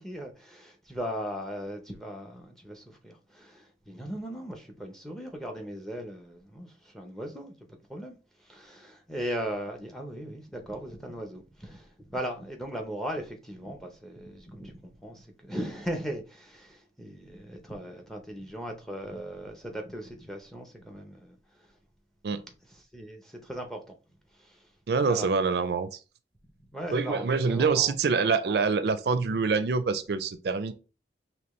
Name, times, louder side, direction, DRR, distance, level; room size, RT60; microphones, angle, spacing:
voice 1, 0.0-7.6 7.9-21.8 22.6-24.0 24.3-24.7 25.0-25.3 26.4-27.9, equal, ahead, 0.6 m, -38 dB
voice 2, 24.9-26.0 26.9-30.7, right 5 dB, 65° right, 0.4 m, -26 dB
4.3 x 3.0 x 3.1 m
head